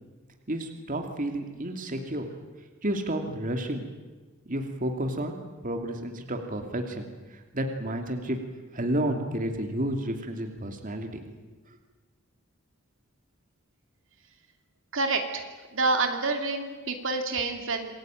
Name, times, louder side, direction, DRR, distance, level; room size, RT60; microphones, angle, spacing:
voice 1, 0.5-2.3 2.6-3.9 4.4-8.4 8.7-11.2 11.7-11.8, right 1 dB, 40° right, 4 dB, 2.8 m, -31 dB
voice 2, 14.9-15.4 15.7-17.9, right 3 dB, 65° right, 5 dB, 2.9 m, -27 dB
27.5 x 21.5 x 9.2 m, 1.3 s
head